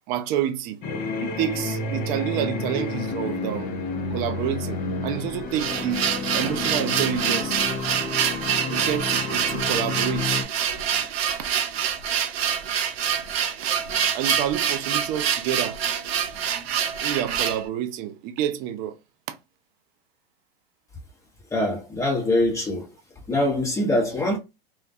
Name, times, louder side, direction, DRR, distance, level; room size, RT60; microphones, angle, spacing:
voice 1, 0.1-0.8 1.2-3.7 4.1-6.0 6.3-7.6 8.7-10.4 14.1-15.8 17.0-19.0 19.3-19.4, right 10 dB, 30° right, 0.4 m, -28 dB
sound 1, 0.8-10.4, left 3 dB, 30° left, 0.6 m, -30 dB
sound 2, 5.3-17.6, right 8 dB, 85° right, 0.6 m, -26 dB
voice 2, 21.5-22.9 23.3-24.4, left 1 dB, 10° left, 0.8 m, -23 dB
2.3 x 2.1 x 2.6 m
hypercardioid pair, 130°, 30 cm